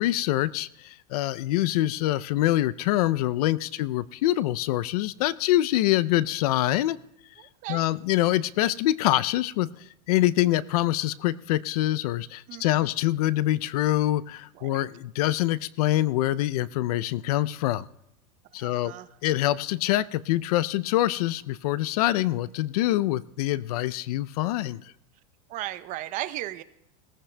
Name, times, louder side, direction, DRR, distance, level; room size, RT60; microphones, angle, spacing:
voice 1, 0.0-7.0 7.7-9.7 10.1-17.9 18.5-18.9 19.2-24.8, left 15 dB, 75° left, 19 dB, 0.5 m, -25 dB
voice 2, 7.4-7.9 12.5-12.9 14.5-14.8 18.6-19.1 25.5-26.6, right 15 dB, 40° right, 13 dB, 0.6 m, -36 dB
20.0 x 14.5 x 2.2 m, 0.85 s
supercardioid pair, 130°, 20 cm